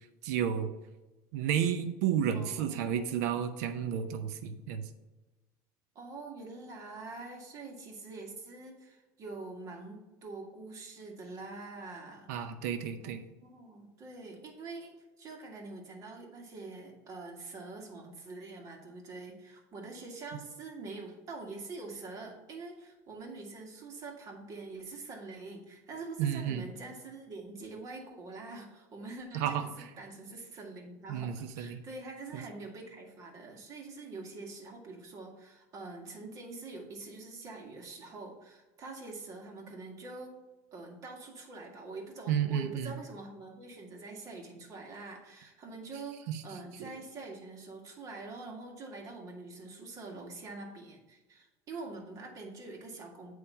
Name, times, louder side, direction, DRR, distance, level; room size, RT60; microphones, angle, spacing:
voice 1, 0.2-0.7 1.3-4.9 12.3-13.2 26.2-26.7 29.3-29.9 31.1-31.8 32.3-32.4 42.3-42.9 46.3-46.4 46.8-46.9, right 9 dB, 85° right, 8 dB, 0.7 m, -32 dB
voice 2, 2.3-3.4 6.0-12.3 13.0-40.3 40.7-53.3, right 3 dB, 40° right, 0 dB, 1.9 m, -45 dB
8.7 x 3.2 x 5.5 m, 1.1 s
supercardioid pair, 120°, 9 cm